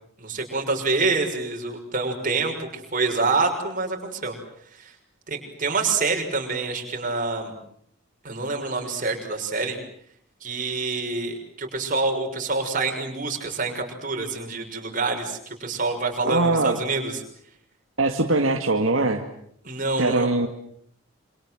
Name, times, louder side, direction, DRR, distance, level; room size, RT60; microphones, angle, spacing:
voice 1, 0.2-4.4 4.7-4.9 5.3-7.5 8.2-9.8 10.4-17.2 19.6-20.3, right 3 dB, 40° right, 3 dB, 6.3 m, -26 dB
voice 2, 16.3-16.8 18.0-19.2 20.0-20.5, right 2 dB, 70° right, 4 dB, 2.2 m, -21 dB
27.5 x 27.0 x 7.8 m, 0.67 s
head